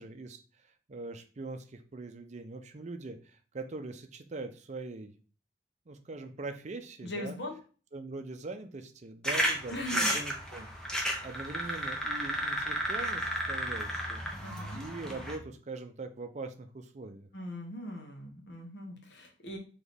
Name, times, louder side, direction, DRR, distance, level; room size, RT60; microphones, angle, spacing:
voice 1, 0.0-5.1 5.9-7.4 7.9-17.3, right 3 dB, 40° right, 7 dB, 0.5 m, -42 dB
voice 2, 7.0-7.6 9.7-10.2 14.4-14.8 17.3-19.6, left 1 dB, 70° left, 1 dB, 1.1 m, -40 dB
sound 1, 9.2-15.4, equal, 5° left, 0.7 m, -33 dB
4.1 x 3.0 x 3.4 m, 0.37 s
head